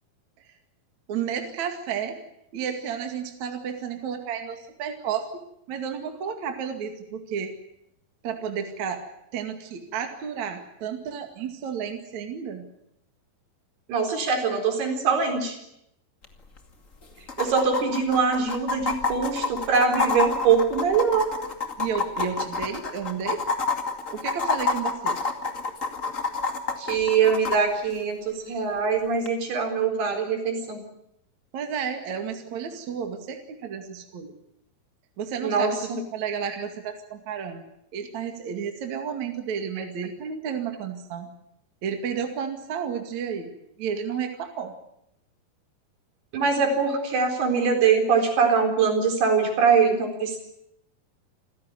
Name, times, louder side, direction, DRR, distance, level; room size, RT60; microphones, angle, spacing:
voice 1, 1.1-2.2 2.5-7.6 8.2-9.0 9.3-12.7 21.8-23.4 24.1-25.2 31.5-34.4 35.2-37.7 37.9-41.3 41.8-43.5 43.8-44.7, right 7 dB, 50° right, 5 dB, 3.2 m, -32 dB
voice 2, 13.9-15.6 17.4-21.3 26.8-30.8 35.4-36.0 39.8-39.9 46.3-50.4, right 5 dB, 75° right, 4 dB, 6.2 m, -23 dB
sound 1, 16.2-16.3 16.6-16.7 17.3-27.6 29.2-29.3, left 4 dB, 25° left, 1.9 m, -27 dB
28.0 x 16.5 x 9.6 m, 0.79 s
omnidirectional pair, 4.6 m